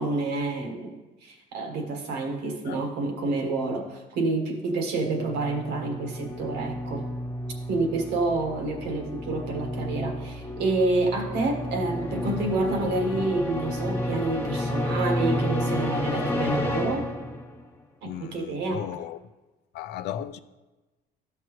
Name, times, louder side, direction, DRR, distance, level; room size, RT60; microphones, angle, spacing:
voice 1, 0.0-7.1 7.7-17.1 18.0-18.8, right 2 dB, 85° right, 1.5 m, -28 dB
sound 1, 5.0-17.7, left 1 dB, 15° left, 1.2 m, -31 dB
voice 2, 18.0-19.3 19.7-20.4, left 10 dB, 80° left, 0.5 m, -36 dB
12.5 x 5.8 x 3.1 m
cardioid pair, 110°, 17 cm